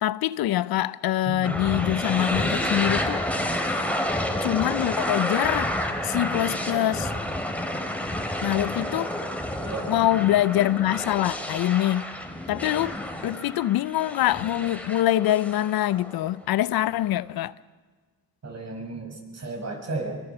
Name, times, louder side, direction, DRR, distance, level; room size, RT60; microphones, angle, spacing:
voice 1, 0.0-3.2 4.4-5.7 6.0-7.1 8.4-9.1 9.9-12.1 12.5-12.9 13.2-17.5, left 13 dB, 80° left, 0.7 m, -24 dB
voice 2, 1.3-1.6 9.6-9.9 18.4-20.2, right 2 dB, 45° right, 5.3 m, -34 dB
sound 1, 1.4-16.4, left 1 dB, 5° left, 3.0 m, -29 dB
22.5 x 22.0 x 6.8 m
cardioid pair, 75°, 36 cm